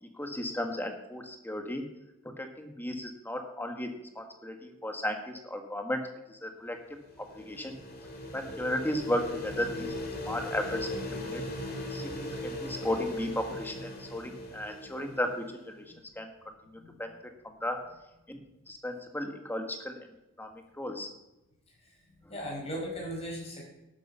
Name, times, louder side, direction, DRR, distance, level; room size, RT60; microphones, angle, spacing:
voice 1, 0.0-1.8 2.4-6.8 7.2-7.8 8.3-9.9 10.2-11.4 11.9-15.8 16.1-17.1 17.4-17.8 18.3-18.4 18.7-20.0 20.4-21.1, left 1 dB, 10° left, 5 dB, 1.4 m, -35 dB
sound 1, 6.8-15.6, left 1 dB, 45° left, 2.4 m, -39 dB
voice 2, 22.3-23.6, equal, 30° left, -2 dB, 5.1 m, -38 dB
12.0 x 9.7 x 5.6 m, 0.98 s
head